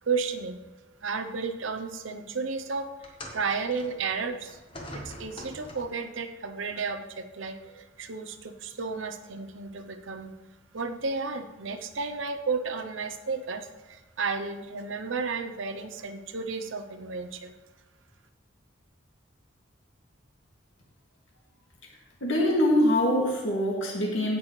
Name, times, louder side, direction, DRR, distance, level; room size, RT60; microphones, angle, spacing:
voice 1, 0.0-0.6 1.0-2.9 3.3-4.6 4.9-10.3 10.7-17.5, right 4 dB, 90° right, 7 dB, 0.8 m, -33 dB
sound 1, 3.0-6.1 7.1-7.2 8.1-8.2, left 1 dB, 30° left, 1.3 m, -44 dB
voice 2, 22.2-24.4, left 1 dB, 85° left, -1 dB, 2.2 m, -24 dB
16.0 x 6.2 x 3.3 m, 1.1 s
head